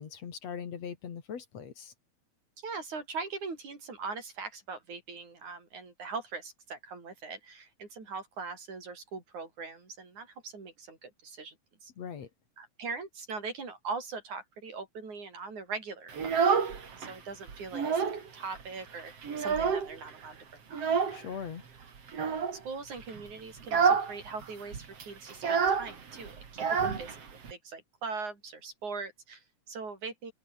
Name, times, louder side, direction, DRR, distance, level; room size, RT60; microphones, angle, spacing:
voice 1, 0.0-1.9 12.0-12.3 21.1-21.6, left 7 dB, 65° left, 3.3 m, -40 dB
voice 2, 2.6-11.6 11.8-11.9 12.6-16.6 17.0-20.8 22.5-27.3 27.5-30.3, right 4 dB, 90° right, 7.2 m, -41 dB
Child speech kid speaking, 16.1-17.1 17.5-18.3 18.6-18.7 19.0-20.1 20.7-21.2 22.1-22.6 23.0-23.2 23.6-24.1 24.4-24.5 24.7-27.5, right 6 dB, 55° right, 3.9 m, -28 dB
open air
omnidirectional pair, 3.3 m